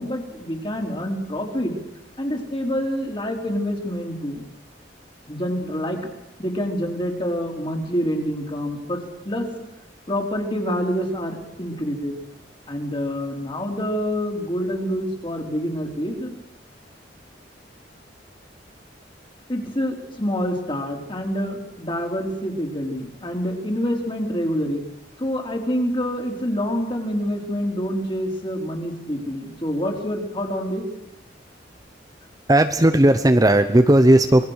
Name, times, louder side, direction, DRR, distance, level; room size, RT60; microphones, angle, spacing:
voice 1, 0.0-1.7 2.2-4.4 5.3-6.0 6.4-9.5 10.1-12.1 12.7-16.4 19.5-24.8 25.2-30.9, equal, 30° left, 1 dB, 4.2 m, -27 dB
voice 2, 32.5-34.4, right 1 dB, 20° right, 8 dB, 1.0 m, -15 dB
27.0 x 20.0 x 6.6 m, 0.86 s
head